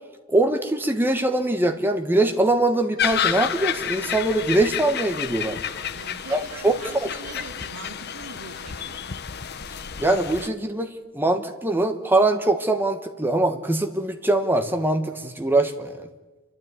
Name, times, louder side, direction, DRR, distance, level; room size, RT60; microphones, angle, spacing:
voice 1, 0.3-5.6 6.3-7.1 10.0-16.1, right 2 dB, 10° right, 6 dB, 1.3 m, -22 dB
sound 1, 3.0-10.5, left 8 dB, 50° left, 0.8 m, -30 dB
voice 2, 5.7-9.0, right 2 dB, 75° right, 1 dB, 3.9 m, -42 dB
29.0 x 12.5 x 9.4 m, 1.2 s
head